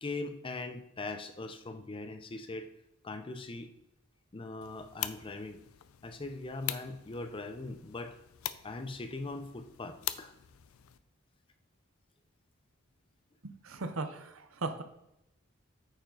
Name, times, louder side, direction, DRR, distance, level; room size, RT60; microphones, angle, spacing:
voice 1, 0.0-2.7 3.0-3.7 4.3-5.6 6.0-8.1 8.6-10.3, left 2 dB, 25° left, 8 dB, 0.6 m, -40 dB
sound 1, 4.6-11.0, left 13 dB, 85° left, 0.4 m, -43 dB
voice 2, 13.4-14.8, right 3 dB, 75° right, 8 dB, 0.8 m, -38 dB
8.7 x 4.9 x 3.8 m, 0.85 s
head